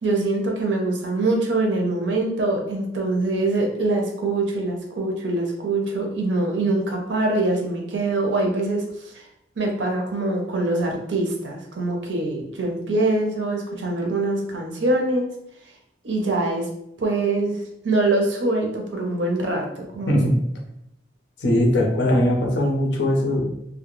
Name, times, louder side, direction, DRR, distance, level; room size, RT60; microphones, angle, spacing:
voice 1, 0.0-8.8 9.6-15.3 16.0-16.7 17.0-17.6 17.8-20.1, right 2 dB, 80° right, 1 dB, 0.6 m, -24 dB
voice 2, 21.4-23.4, left 1 dB, 75° left, 0 dB, 0.6 m, -20 dB
2.2 x 2.0 x 3.0 m, 0.78 s
head